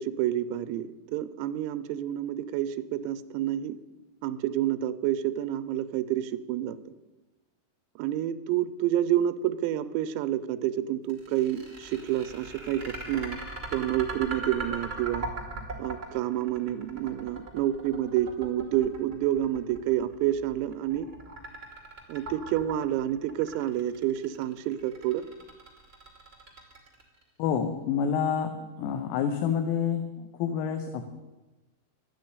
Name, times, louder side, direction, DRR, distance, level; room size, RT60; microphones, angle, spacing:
voice 1, 0.0-3.8 4.2-6.8 8.0-13.4 13.7-15.3 15.8-21.1 22.1-25.3, right 12 dB, 85° right, 11 dB, 3.5 m, -29 dB
sound 1, 11.1-27.2, right 3 dB, 25° right, 1.4 m, -39 dB
voice 2, 27.4-31.0, left 7 dB, 80° left, 6 dB, 3.5 m, -28 dB
12.5 x 9.9 x 9.5 m, 1.1 s
omnidirectional pair, 6.0 m